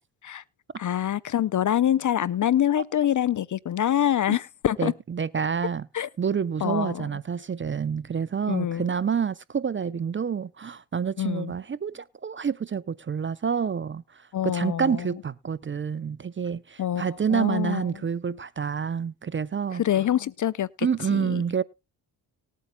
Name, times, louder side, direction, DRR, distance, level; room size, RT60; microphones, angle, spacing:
voice 1, 0.8-4.9 5.9-6.1 6.6-7.2 8.5-8.9 11.2-11.5 14.3-15.1 16.8-17.9 19.8-21.4, left 11 dB, 40° left, 0.5 m, -25 dB
voice 2, 4.8-5.9 6.2-19.8 20.8-21.6, right 7 dB, 25° right, 0.5 m, -28 dB
19.5 x 8.5 x 2.2 m
supercardioid pair, 50°, 48 cm